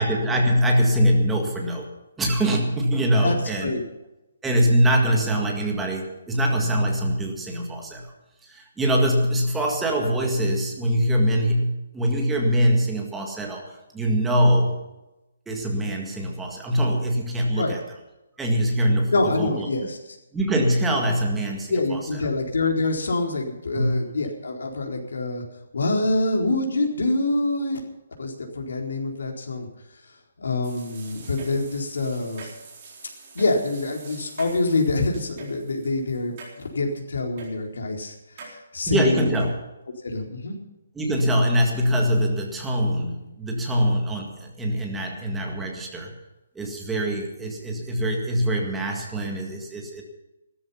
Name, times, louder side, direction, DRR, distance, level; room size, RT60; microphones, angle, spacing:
voice 1, 0.0-3.7 4.4-8.1 8.4-14.8 15.5-17.8 18.4-19.1 19.4-19.7 20.3-22.2 23.8-24.0 38.9-39.6 41.0-46.2 46.6-50.0, equal, 5° right, 0 dB, 1.8 m, -23 dB
voice 2, 19.1-20.0 21.7-25.4 25.7-27.8 28.2-29.7 30.4-32.4 33.3-36.3 36.7-39.4 40.0-40.6, left 2 dB, 85° left, 1 dB, 4.2 m, -25 dB
sound 1, 30.6-36.9 37.4-37.5 38.4-38.5 39.3-39.6, right 3 dB, 25° right, 4.2 m, -44 dB
15.5 x 13.5 x 5.8 m, 0.97 s
hypercardioid pair, 175°, 0 cm